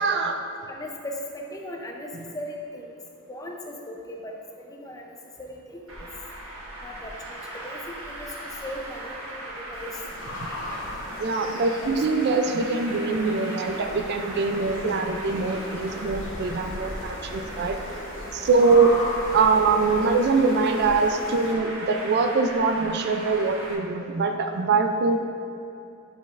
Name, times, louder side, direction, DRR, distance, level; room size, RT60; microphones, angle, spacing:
voice 1, 0.0-0.4 11.2-17.8 18.3-19.0 19.3-25.2, right 4 dB, 55° right, 5 dB, 0.4 m, -23 dB
voice 2, 0.6-3.0 3.3-4.4 4.6-6.1 6.8-10.0 10.8-10.9 11.5-11.9 13.5-13.6, left 1 dB, 20° left, 1 dB, 0.6 m, -38 dB
Traffic noise roadway noise, 5.9-23.7, right 1 dB, 80° right, 1.1 m, -38 dB
sound 1, 9.7-21.5, left 1 dB, 70° left, 0.8 m, -38 dB
8.8 x 5.2 x 2.5 m, 2.6 s
head